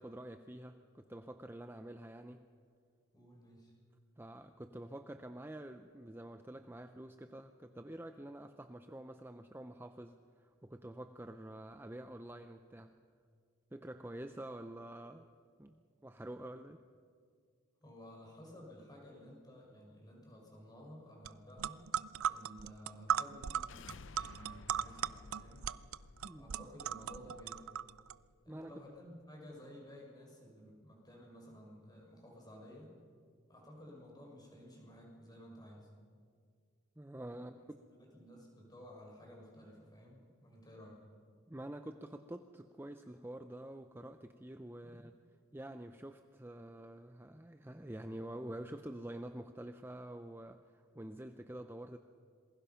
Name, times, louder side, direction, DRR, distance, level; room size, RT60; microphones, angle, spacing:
voice 1, 0.0-2.4 4.2-13.0 13.7-15.3 15.6-16.8 26.2-26.5 28.5-28.8 37.0-37.8 41.5-45.1 45.5-52.0, right 1 dB, 10° right, 7 dB, 0.6 m, -48 dB
voice 2, 3.1-3.7 17.8-21.9 22.3-23.9 24.1-25.6 26.3-27.7 28.4-32.9 33.5-35.9 37.3-37.5 38.0-41.1 44.8-45.1, equal, 20° left, -1 dB, 5.6 m, -54 dB
sound 1, 21.3-21.4 21.6-28.1, right 9 dB, 75° right, 0.5 m, -38 dB
sound 2, 23.4-28.4, left 4 dB, 60° left, 0.6 m, -56 dB
27.0 x 21.0 x 5.7 m, 2.1 s
head